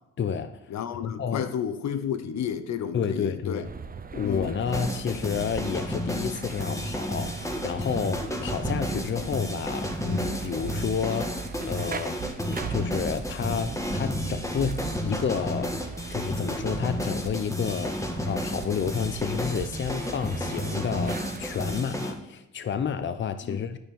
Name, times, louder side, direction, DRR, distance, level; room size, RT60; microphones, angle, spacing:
voice 1, 0.2-0.6 1.0-1.5 2.9-3.7 4.1-12.2 12.7-15.7 16.1-23.8, left 7 dB, 40° left, 0.7 m, -30 dB
voice 2, 0.7-3.6 4.2-4.5 23.5-23.6, left 8 dB, 65° left, 0.9 m, -31 dB
sound 1, 3.6-21.8, right 5 dB, 30° right, 0.9 m, -40 dB
sound 2, 4.7-22.1, left 1 dB, 10° left, 1.6 m, -32 dB
sound 3, 8.6-9.0 10.2-11.0 12.2-13.0 14.2-15.0, right 12 dB, 65° right, 0.6 m, -39 dB
12.0 x 5.5 x 7.0 m
cardioid pair, 90°, 30 cm